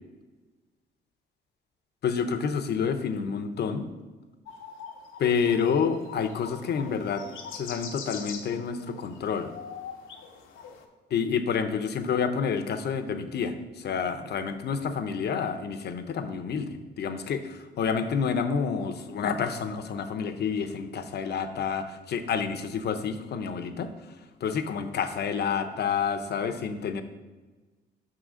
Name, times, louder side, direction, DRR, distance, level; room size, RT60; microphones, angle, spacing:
voice 1, 2.0-3.9 5.2-7.2 7.5-9.5 11.1-23.9 24.4-27.0, left 6 dB, 55° left, 8 dB, 0.7 m, -29 dB
sound 1, 4.5-10.8, left 6 dB, 85° left, 0.8 m, -43 dB
6.2 x 3.8 x 6.2 m, 1.3 s
cardioid pair, 90°, 20 cm